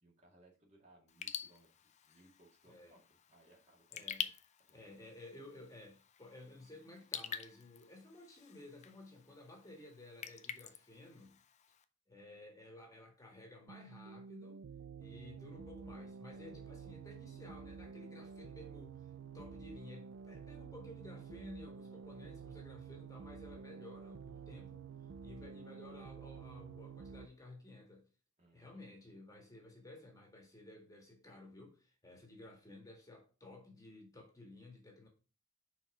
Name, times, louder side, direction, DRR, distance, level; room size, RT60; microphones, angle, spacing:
voice 1, 0.0-4.3 4.7-5.1 28.4-28.9, right 1 dB, 35° right, 2.1 m, -66 dB
Raindrop / Drip, 1.1-11.8, left 8 dB, 35° left, 0.5 m, -48 dB
voice 2, 3.9-4.3 4.7-11.4 12.1-14.6 15.0-24.9 25.2-28.1 28.5-35.1, left 2 dB, 15° left, 1.7 m, -54 dB
sound 1, 13.7-27.3, right 6 dB, 65° right, 0.3 m, -50 dB
5.5 x 4.5 x 4.8 m
head